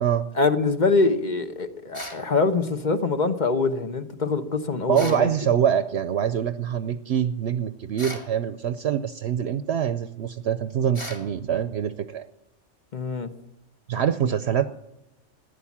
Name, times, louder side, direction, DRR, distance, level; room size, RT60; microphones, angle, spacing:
voice 1, 0.3-5.3 12.9-13.3, left 3 dB, 40° left, 8 dB, 1.1 m, -24 dB
sound 1, 1.9-2.3 4.9-5.3 8.0-8.3 10.9-11.3, left 1 dB, 25° left, 2.2 m, -36 dB
voice 2, 4.9-12.2 13.9-14.7, right 9 dB, 65° right, 11 dB, 0.9 m, -24 dB
14.5 x 10.0 x 7.2 m, 0.87 s
omnidirectional pair, 1.3 m